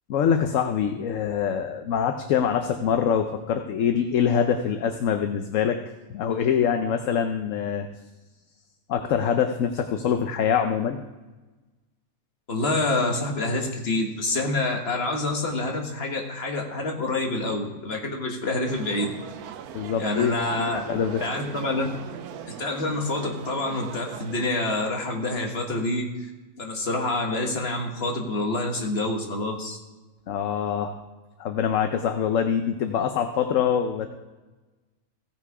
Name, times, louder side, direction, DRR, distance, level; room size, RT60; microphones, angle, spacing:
voice 1, 0.1-5.8 6.1-7.9 8.9-11.0 19.7-21.2 30.3-30.9 31.4-34.1, left 8 dB, 65° left, 6 dB, 1.0 m, -24 dB
voice 2, 12.5-19.1 20.0-20.8 21.2-21.9 22.6-26.1 26.6-29.8, left 2 dB, 45° left, 1 dB, 1.8 m, -27 dB
sound 1, 18.7-24.5, right 9 dB, 90° right, 1.2 m, -39 dB
16.5 x 5.7 x 4.8 m, 1.2 s
omnidirectional pair, 1.5 m